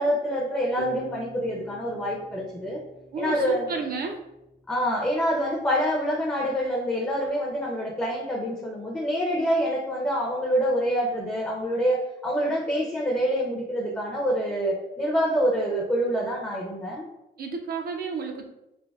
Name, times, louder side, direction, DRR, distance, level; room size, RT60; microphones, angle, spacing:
voice 1, 0.0-2.8 3.2-3.7 4.7-17.1, equal, 10° left, -2 dB, 0.5 m, -26 dB
sound 1, 0.8-4.2, right 4 dB, 80° right, 1.2 m, -44 dB
voice 2, 3.1-4.2 17.4-18.5, right 4 dB, 50° right, 3 dB, 0.4 m, -32 dB
3.3 x 2.1 x 2.3 m, 0.90 s
cardioid pair, 90°, 20 cm